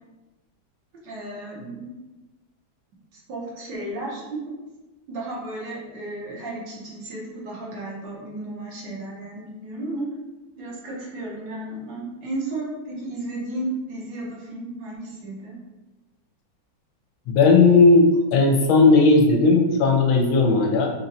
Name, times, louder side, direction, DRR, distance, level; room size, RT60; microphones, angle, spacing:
voice 1, 1.0-1.9 3.1-4.5 5.1-10.1 10.6-15.6, right 2 dB, 65° right, -4 dB, 1.4 m, -33 dB
voice 2, 17.3-20.9, left 3 dB, 80° left, 2 dB, 1.3 m, -16 dB
4.0 x 3.1 x 2.6 m, 1.1 s
omnidirectional pair, 2.3 m